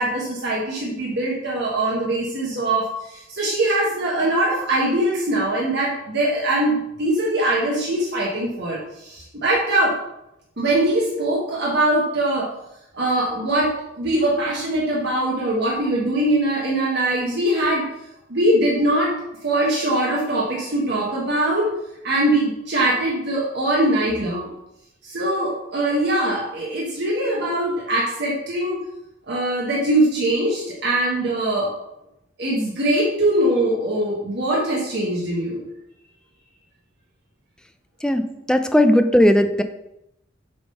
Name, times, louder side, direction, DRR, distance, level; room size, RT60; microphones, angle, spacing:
voice 1, 0.0-10.0 10.6-12.5 12.9-17.9 18.3-19.1 19.4-21.7 22.0-24.5 25.0-28.8 29.3-31.7 32.4-35.6, right 1 dB, 60° right, -4 dB, 1.4 m, -22 dB
voice 2, 38.0-39.6, left 1 dB, 5° left, 7 dB, 0.4 m, -17 dB
6.8 x 3.7 x 5.6 m, 0.84 s
head